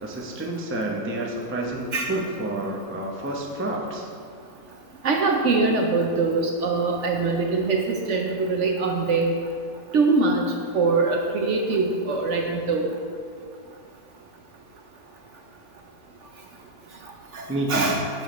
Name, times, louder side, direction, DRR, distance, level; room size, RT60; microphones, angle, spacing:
voice 1, 0.0-4.1 17.5-17.9, right 1 dB, 15° right, -1 dB, 0.4 m, -29 dB
voice 2, 5.0-7.8 8.1-9.3 9.9-10.4 10.7-12.9 17.3-18.0, right 3 dB, 60° right, 2 dB, 0.8 m, -23 dB
9.2 x 7.1 x 3.1 m, 2.2 s
omnidirectional pair, 1.6 m